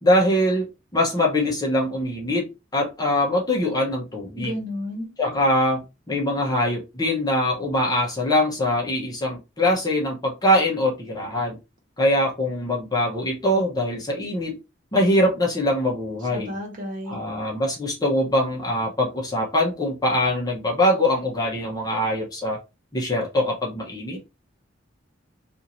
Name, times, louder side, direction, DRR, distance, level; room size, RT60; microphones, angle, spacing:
voice 1, 0.0-4.5 5.2-11.6 12.0-14.6 14.9-16.5 17.1-22.6 22.9-24.2, left 1 dB, 20° left, 0.8 m, -23 dB
voice 2, 4.4-5.1 16.3-17.2, equal, 45° right, 1.3 m, -31 dB
2.7 x 2.5 x 2.9 m
head